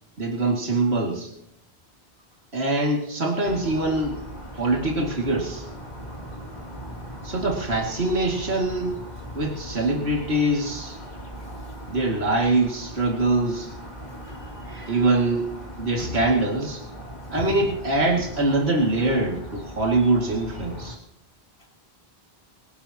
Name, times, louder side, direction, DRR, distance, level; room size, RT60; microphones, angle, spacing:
voice 1, 0.2-1.3 2.5-4.2 4.6-5.6 7.2-9.0 9.3-11.0 11.9-13.7 14.7-15.5 15.8-16.8 17.3-21.0, right 2 dB, 85° right, 0 dB, 2.6 m, -23 dB
sound 1, 3.4-21.0, equal, 45° left, 3.1 m, -39 dB
voice 2, 14.0-14.9 16.0-16.2 17.3-17.7, left 1 dB, 80° left, 1 dB, 3.5 m, -36 dB
25.5 x 11.5 x 2.9 m, 0.80 s
omnidirectional pair, 1.0 m